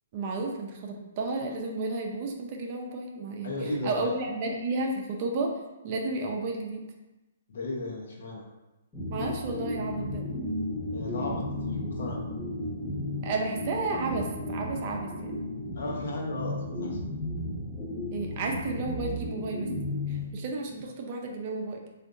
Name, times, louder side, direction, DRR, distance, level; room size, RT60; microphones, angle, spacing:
voice 1, 0.1-3.5 3.8-5.5 5.8-6.8 9.1-10.2 13.2-15.4 18.1-19.7 20.1-21.8, right 3 dB, 45° right, 1 dB, 0.5 m, -32 dB
voice 2, 3.4-4.1 7.5-8.4 10.9-12.2 15.7-17.0, left 2 dB, 70° left, -1 dB, 0.8 m, -35 dB
sound 1, 8.9-20.8, left 1 dB, 10° left, 0.8 m, -34 dB
3.5 x 2.5 x 2.5 m, 1.0 s
hypercardioid pair, 135°, 0 cm